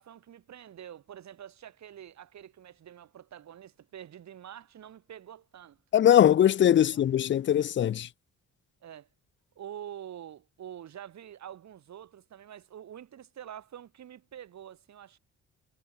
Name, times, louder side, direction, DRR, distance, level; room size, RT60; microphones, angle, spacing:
voice 1, 0.0-5.8 6.9-7.0 8.8-9.1 9.5-15.2, right 10 dB, 65° right, 5.0 m, -46 dB
voice 2, 5.9-8.1, left 10 dB, 40° left, 0.5 m, -21 dB
cardioid pair, 90°, 30 cm